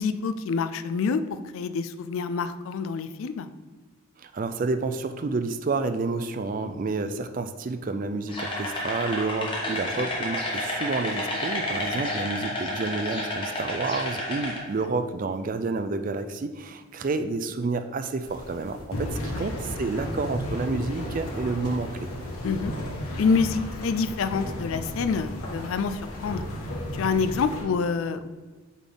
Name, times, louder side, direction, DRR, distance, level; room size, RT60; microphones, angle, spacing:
voice 1, 0.0-3.5 9.7-9.8 19.2-19.5 22.4-22.7 23.2-26.4 26.9-28.3, left 5 dB, 70° left, 11 dB, 0.4 m, -27 dB
voice 2, 4.2-22.1, right 3 dB, 40° right, 9 dB, 0.4 m, -29 dB
sound 1, 8.3-14.6, left 1 dB, 25° left, 1.3 m, -30 dB
sound 2, 18.2-27.6, equal, 90° left, 1.3 m, -34 dB
8.2 x 3.6 x 3.9 m, 1.3 s
head